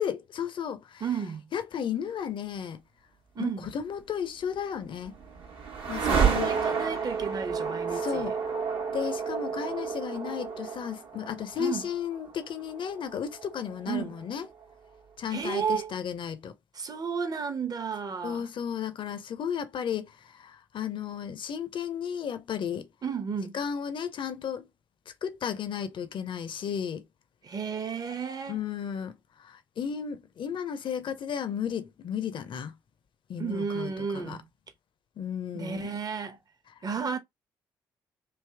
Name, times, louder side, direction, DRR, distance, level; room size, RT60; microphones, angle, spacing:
voice 1, 0.0-1.0 1.5-2.8 3.4-5.2 5.9-6.5 8.0-8.3 8.9-14.5 15.2-16.5 18.2-20.1 20.4-22.9 23.5-24.6 25.2-27.0 28.5-29.1 29.4-32.7 33.3-34.4 35.2-35.9, left 8 dB, 50° left, 0.7 m, -34 dB
voice 2, 1.0-1.4 3.3-3.7 6.0-8.3 11.6-11.9 13.9-14.1 15.3-15.9 16.7-18.5 23.0-23.6 27.4-28.6 33.4-34.4 35.5-36.4 36.8-37.2, right 6 dB, 35° right, 0.9 m, -33 dB
sound 1, 4.6-14.6, right 6 dB, 55° right, 1.1 m, -31 dB
3.4 x 2.7 x 3.3 m
figure-of-eight pair, 40°, 11 cm